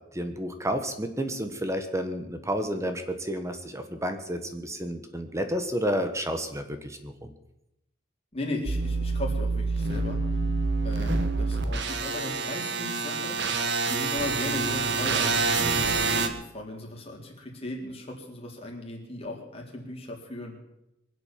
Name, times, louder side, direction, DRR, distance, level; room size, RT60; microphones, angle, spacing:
voice 1, 0.1-7.3 15.6-15.9, equal, 15° right, 7 dB, 1.3 m, -31 dB
voice 2, 8.3-10.2 10.8-13.6 13.9-15.3 15.7-20.5, left 1 dB, 30° left, -1 dB, 3.9 m, -37 dB
sound 1, 8.6-16.3, right 3 dB, 60° right, 1.6 m, -27 dB
23.5 x 8.0 x 7.5 m, 0.86 s
head